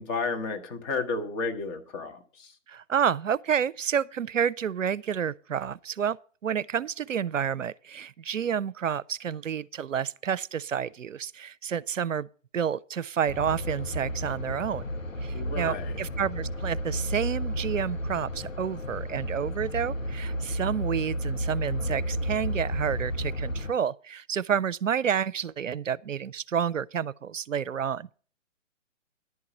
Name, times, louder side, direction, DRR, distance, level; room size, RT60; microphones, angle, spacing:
voice 1, 0.0-2.5 15.3-16.0, left 4 dB, 15° left, 0.9 m, -32 dB
voice 2, 2.7-6.2 6.4-12.3 12.5-14.8 15.2-28.1, right 8 dB, 80° right, 0.5 m, -29 dB
sound 1, 13.3-23.7, equal, 85° left, 1.0 m, -32 dB
11.0 x 4.7 x 8.1 m
figure-of-eight pair, 125°, 38 cm